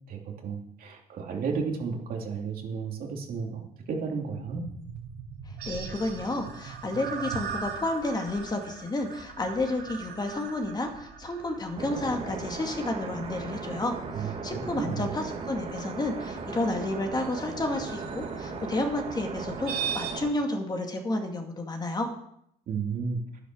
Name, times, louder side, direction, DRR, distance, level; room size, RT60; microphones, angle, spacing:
voice 1, 0.1-3.6 3.9-4.6 14.1-15.1 22.7-23.2, right 5 dB, 60° right, 1 dB, 3.0 m, -33 dB
sound 1, 4.4-20.1, right 7 dB, 80° right, 4.6 m, -40 dB
voice 2, 5.5-22.1, left 2 dB, 25° left, 3 dB, 2.1 m, -31 dB
sound 2, 11.8-20.3, right 4 dB, 35° right, 2.0 m, -37 dB
11.0 x 10.0 x 6.3 m, 0.74 s
cardioid pair, 110°, 17 cm